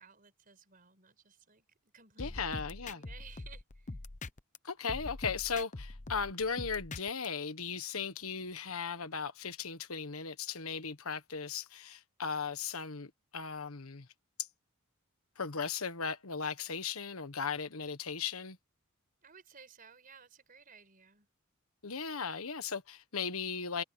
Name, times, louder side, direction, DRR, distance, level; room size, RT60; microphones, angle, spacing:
voice 1, 0.0-3.9 19.2-21.3, right 6 dB, 40° right, 5.4 m, -57 dB
voice 2, 2.2-3.0 4.6-14.1 15.4-18.6 21.8-23.8, left 5 dB, 90° left, 1.5 m, -37 dB
sound 1, 2.2-4.6 4.9-7.3, left 2 dB, 35° left, 0.8 m, -43 dB
head